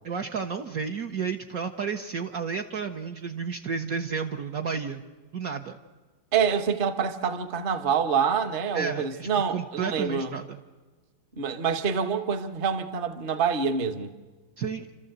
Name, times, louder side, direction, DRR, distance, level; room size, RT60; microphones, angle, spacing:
voice 1, 0.0-5.0 5.3-5.8 8.7-10.6 14.6-14.9, right 6 dB, 55° right, 1.2 m, -32 dB
voice 2, 6.3-10.3 11.4-14.1, right 6 dB, 35° right, 1.0 m, -26 dB
29.0 x 13.5 x 8.0 m
omnidirectional pair, 2.1 m